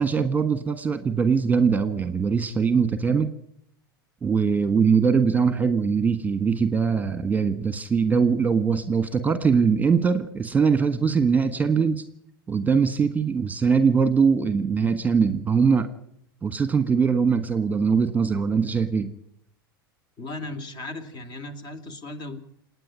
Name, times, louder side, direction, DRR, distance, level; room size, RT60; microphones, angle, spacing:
voice 1, 0.0-3.3 4.2-12.0 12.5-15.9 16.4-19.1, right 5 dB, 15° right, 12 dB, 1.6 m, -22 dB
voice 2, 20.2-22.4, left 2 dB, 35° left, 13 dB, 3.1 m, -36 dB
28.0 x 9.7 x 9.9 m, 0.70 s
hypercardioid pair, 95°, 12 cm